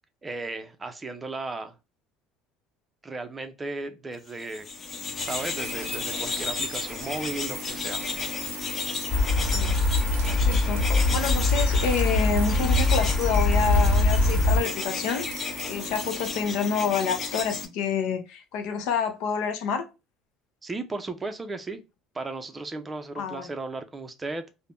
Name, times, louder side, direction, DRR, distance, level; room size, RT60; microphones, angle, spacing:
voice 1, 0.2-1.8 3.0-4.7 5.2-8.1 20.6-21.8 22.1-24.5, right 3 dB, 20° right, 0.5 m, -35 dB
sound 1, 4.4-17.7, left 4 dB, 35° left, 0.7 m, -33 dB
sound 2, 5.2-16.3, right 8 dB, 90° right, 0.5 m, -42 dB
sound 3, 9.1-14.6, left 2 dB, 5° left, 1.7 m, -22 dB
voice 2, 10.2-15.2 15.7-19.8 23.2-23.5, left 6 dB, 75° left, 0.7 m, -28 dB
3.4 x 2.1 x 2.4 m
supercardioid pair, 105°, 0 cm